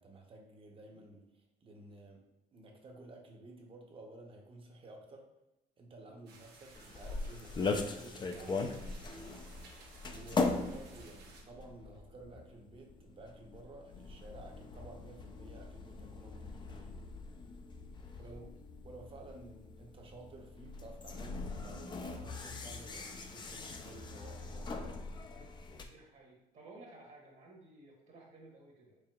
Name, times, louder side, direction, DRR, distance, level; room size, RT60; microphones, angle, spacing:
voice 1, 0.0-2.2 2.5-5.3 5.8-9.4 10.1-16.9 18.2-18.5 18.8-25.0, right 2 dB, 30° right, 1 dB, 0.7 m, -53 dB
voice 2, 0.7-1.1 6.1-6.3 18.0-18.5 25.7-29.0, right 2 dB, 45° right, -1 dB, 1.0 m, -56 dB
sound 1, 6.3-11.4, right 3 dB, 80° right, 0.9 m, -57 dB
sound 2, 6.8-25.9, left 3 dB, 25° left, 0.4 m, -40 dB
4.6 x 3.4 x 2.3 m, 0.94 s
cardioid pair, 110°, 17 cm